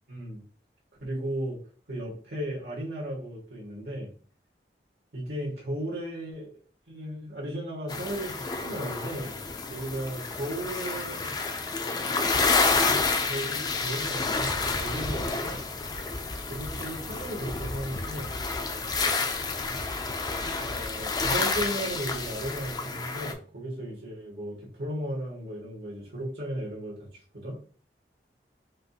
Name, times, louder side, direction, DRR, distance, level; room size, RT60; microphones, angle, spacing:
voice 1, 0.1-0.4 1.0-1.6 1.9-4.1 5.1-6.5 6.9-9.4 9.7-11.3 13.2-15.6 16.5-18.4 20.6-27.1 27.3-27.6, right 1 dB, 70° right, -3 dB, 1.8 m, -35 dB
sound 1, 7.9-23.3, left 3 dB, 20° left, 0.4 m, -29 dB
5.2 x 2.5 x 2.8 m, 0.41 s
head